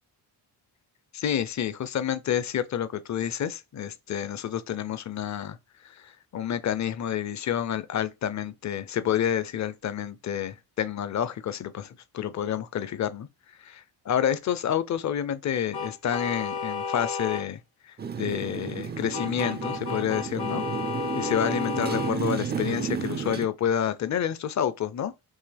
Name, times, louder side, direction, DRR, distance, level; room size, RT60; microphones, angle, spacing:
voice 1, 1.1-5.6 5.8-13.3 13.6-17.6 17.9-20.6 21.1-25.1, left 9 dB, 40° left, 0.5 m, -29 dB
sound 1, 15.7-17.4 19.1-22.1, left 5 dB, 65° left, 0.9 m, -32 dB
Motorcycle, 18.0-23.5, right 6 dB, 25° right, 0.3 m, -32 dB
5.4 x 2.8 x 3.3 m
wide cardioid pair, 115°, 43 cm